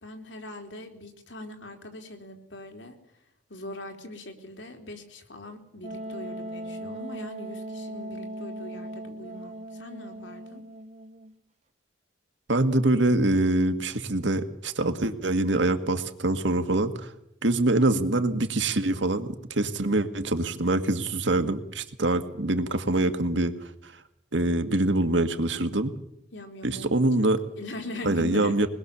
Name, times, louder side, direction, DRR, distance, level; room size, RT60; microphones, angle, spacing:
voice 1, 0.0-3.0 3.5-10.6 26.3-27.3 27.6-28.7, left 1 dB, 80° left, 4 dB, 3.5 m, -41 dB
Wind instrument woodwind instrument, 5.8-11.4, right 1 dB, 35° right, 0.9 m, -38 dB
voice 2, 12.5-17.1 17.4-23.5 24.3-25.9 26.6-27.4 28.0-28.7, right 2 dB, 80° right, 8 dB, 1.8 m, -24 dB
22.5 x 20.5 x 6.9 m, 0.80 s
head